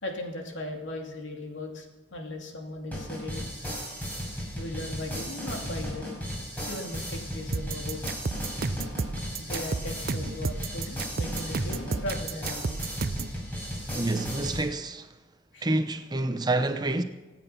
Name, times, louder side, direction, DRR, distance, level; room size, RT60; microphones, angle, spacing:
voice 1, 0.0-1.9 2.1-3.5 4.5-6.2 6.7-8.0 9.4-12.8 15.5-15.6, left 1 dB, 80° left, 2.7 m, -37 dB
sound 1, 2.9-14.6, equal, 10° left, 6.7 m, -35 dB
sound 2, 7.5-13.4, right 4 dB, 50° right, 0.5 m, -32 dB
voice 2, 13.9-15.1 15.6-17.0, right 2 dB, 20° right, 0.8 m, -28 dB
25.5 x 9.1 x 5.9 m
head